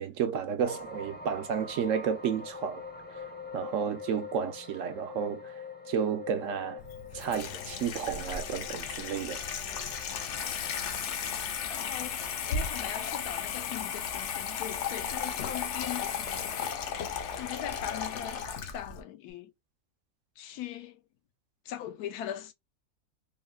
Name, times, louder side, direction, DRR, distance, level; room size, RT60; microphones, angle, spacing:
voice 1, 0.0-2.8 3.5-5.6 5.9-6.8 7.1-9.4, right 7 dB, 70° right, 0.8 m, -32 dB
sound 1, 0.6-13.0 13.4-13.7, left 4 dB, 10° left, 0.5 m, -45 dB
Water tap faucet / Sink (filling or washing), 6.8-19.0, left 7 dB, 65° left, 0.8 m, -35 dB
voice 2, 11.7-12.2 12.5-18.4 18.7-19.5 20.4-21.0 21.7-22.5, left 11 dB, 85° left, 1.1 m, -40 dB
3.7 x 2.1 x 2.2 m
omnidirectional pair, 1.6 m